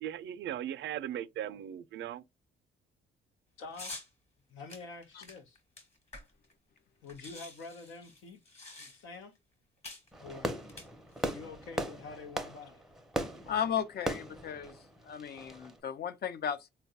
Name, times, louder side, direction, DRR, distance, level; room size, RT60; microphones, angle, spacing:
voice 1, 0.0-2.2, right 11 dB, 65° right, 0.4 m, -38 dB
voice 2, 3.6-3.9 4.5-5.6 7.0-8.4 8.8-9.3 10.2-10.5 11.3-12.8, left 4 dB, 85° left, 0.7 m, -47 dB
sound 1, 3.7-4.1 4.7-6.5 6.8-6.9 7.1-9.2 9.8-10.1 10.6-11.4, left 2 dB, 35° left, 1.3 m, -47 dB
Fireworks, 10.1-15.7, equal, ahead, 0.6 m, -38 dB
voice 3, 13.5-14.8 15.0-16.7, left 8 dB, 55° left, 0.5 m, -35 dB
3.9 x 2.2 x 2.7 m
cardioid pair, 90°, 20 cm